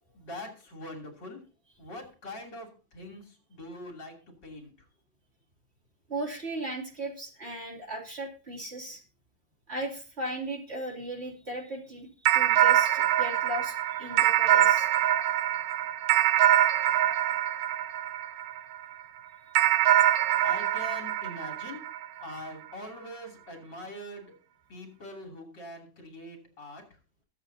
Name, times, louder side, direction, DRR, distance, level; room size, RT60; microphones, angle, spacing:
voice 1, 0.1-1.4 1.8-4.2 4.4-4.7 20.4-21.9 22.2-24.3 24.7-26.8, left 1 dB, 65° left, 2 dB, 3.7 m, -43 dB
voice 2, 6.1-9.0 9.7-14.9, right 1 dB, 30° right, 0 dB, 3.1 m, -37 dB
sound 1, 12.3-18.8 19.5-22.3, right 12 dB, 85° right, 1.6 m, -24 dB
22.5 x 7.7 x 2.7 m, 0.35 s
omnidirectional pair, 2.1 m